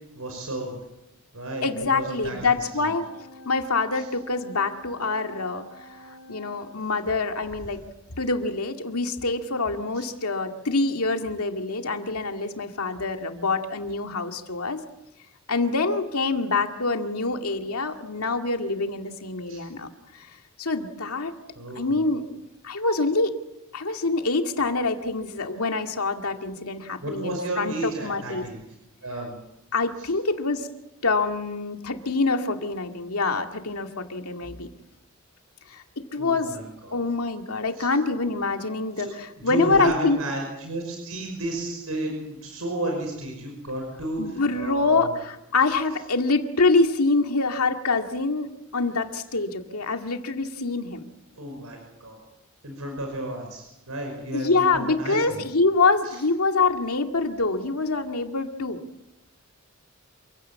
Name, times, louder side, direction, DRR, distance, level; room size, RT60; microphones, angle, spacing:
voice 1, 0.2-0.8 1.3-2.9 4.0-4.1 9.9-10.1 19.5-19.6 21.6-22.0 27.0-28.6 29.0-29.4 30.0-30.1 36.2-37.0 37.8-37.9 39.0-39.1 39.4-45.1 51.4-52.2 52.6-55.4 56.0-56.2, right 1 dB, 85° right, 2 dB, 5.7 m, -32 dB
voice 2, 1.6-3.1 3.5-6.0 6.3-7.8 8.2-14.8 15.5-19.9 20.1-20.3 20.6-21.3 21.8-23.4 23.7-28.4 29.7-30.7 31.0-34.7 35.7-36.6 36.9-40.2 44.2-51.0 54.3-58.8, left 3 dB, 90° left, 5 dB, 2.2 m, -25 dB
sound 1, 2.5-6.6, equal, 70° right, 4.3 m, -47 dB
27.5 x 16.0 x 8.6 m, 0.91 s
head